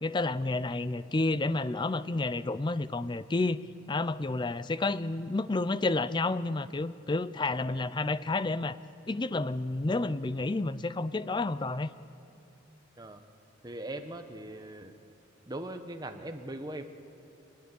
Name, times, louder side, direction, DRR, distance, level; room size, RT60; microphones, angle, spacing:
voice 1, 0.0-3.6 3.9-8.8 9.1-11.9, left 2 dB, 25° left, 15 dB, 0.5 m, -30 dB
voice 2, 13.6-15.0 15.5-16.8, right 1 dB, 20° right, 6 dB, 1.1 m, -40 dB
29.0 x 10.5 x 9.9 m, 2.7 s
head